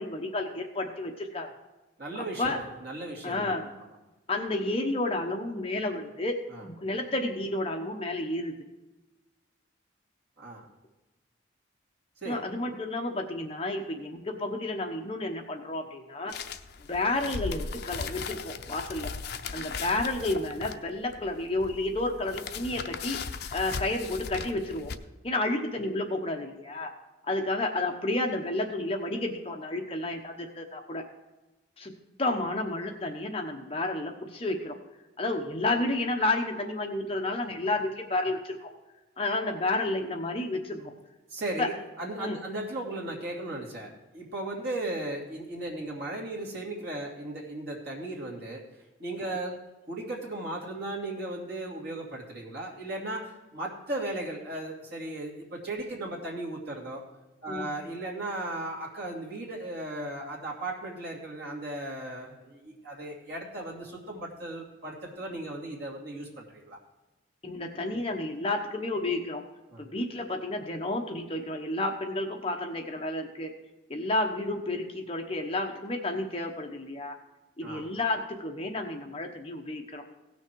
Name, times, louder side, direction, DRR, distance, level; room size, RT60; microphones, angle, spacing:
voice 1, 0.0-1.5 2.4-2.6 3.2-3.7 4.3-6.3 6.6-8.5 12.2-16.3 16.9-19.1 19.5-23.2 23.5-24.9 25.2-26.9 27.3-31.0 31.8-31.9 32.2-34.8 35.2-38.7 39.2-40.9 41.6-41.7 42.2-42.4 49.2-49.4 57.5-57.7 67.4-69.4 69.8-73.5 73.9-77.2 77.6-80.0, left 2 dB, 30° left, 3 dB, 1.0 m, -31 dB
voice 2, 2.0-3.5 6.5-6.7 10.4-10.7 12.2-12.4 40.7-40.9 41.3-41.7 42.0-48.6 49.0-49.6 49.9-57.0 57.4-66.8 69.7-69.8 77.6-77.9, right 2 dB, 55° right, -2 dB, 2.6 m, -36 dB
sound 1, 16.3-25.0, left 5 dB, 55° left, 0.6 m, -38 dB
17.0 x 6.4 x 4.6 m, 1.1 s
head